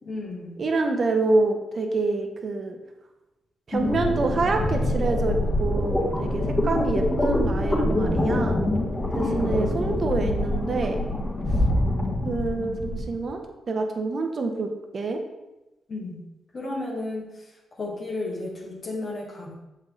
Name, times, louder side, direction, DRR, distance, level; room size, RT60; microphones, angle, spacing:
voice 1, 0.0-0.5 9.2-9.6 15.9-16.2 16.5-19.5, left 2 dB, 55° left, -4 dB, 1.9 m, -33 dB
voice 2, 0.6-2.8 3.7-8.6 9.1-11.0 12.2-15.2, right 3 dB, 55° right, 4 dB, 1.1 m, -26 dB
sound 1, 3.7-13.1, left 1 dB, 35° left, 2.2 m, -25 dB
7.2 x 5.3 x 3.8 m, 0.99 s
hypercardioid pair, 45°, 0 cm